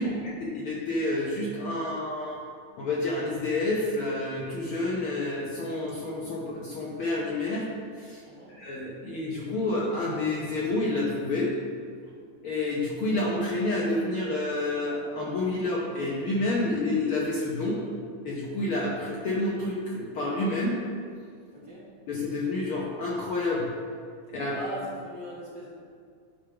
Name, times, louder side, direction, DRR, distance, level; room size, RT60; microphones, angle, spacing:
voice 1, 0.0-2.4 2.8-7.7 8.0-8.2 8.5-11.5 12.4-17.8 18.2-20.8 22.1-23.7 24.3-24.6, left 2 dB, 70° left, -5 dB, 1.3 m, -29 dB
voice 2, 8.2-8.5 21.5-21.8 24.5-25.7, right 1 dB, 50° right, -8 dB, 1.5 m, -39 dB
10.0 x 3.4 x 5.7 m, 2.2 s
omnidirectional pair, 3.6 m